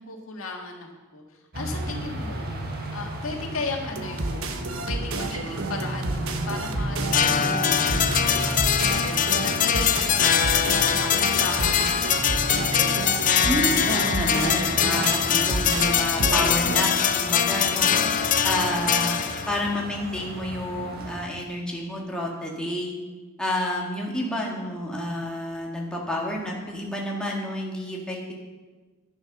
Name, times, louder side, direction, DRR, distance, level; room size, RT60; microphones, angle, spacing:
voice 1, 0.1-4.4 4.8-8.8 9.4-12.4, left 3 dB, 75° left, 2 dB, 1.9 m, -36 dB
sound 1, 1.5-21.2, right 1 dB, 45° right, 1.7 m, -34 dB
sound 2, 3.9-16.9, right 3 dB, 75° right, 1.1 m, -31 dB
sound 3, 7.1-19.6, left 8 dB, 40° left, 0.5 m, -23 dB
voice 2, 13.4-17.9 18.4-19.2 19.5-22.9 23.4-28.3, equal, 5° left, -3 dB, 1.8 m, -29 dB
10.5 x 9.7 x 6.0 m, 1.3 s
head